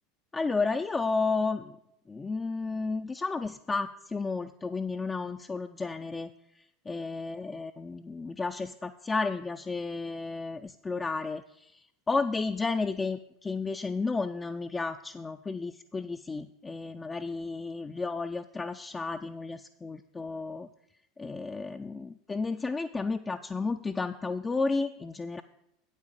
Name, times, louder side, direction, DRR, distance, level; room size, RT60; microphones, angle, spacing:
voice 1, 0.3-1.8 2.1-6.3 6.6-20.7 21.2-25.4, left 4 dB, 20° left, 6 dB, 0.4 m, -32 dB
8.4 x 8.3 x 5.1 m, 0.80 s
figure-of-eight pair, 80°, 0 cm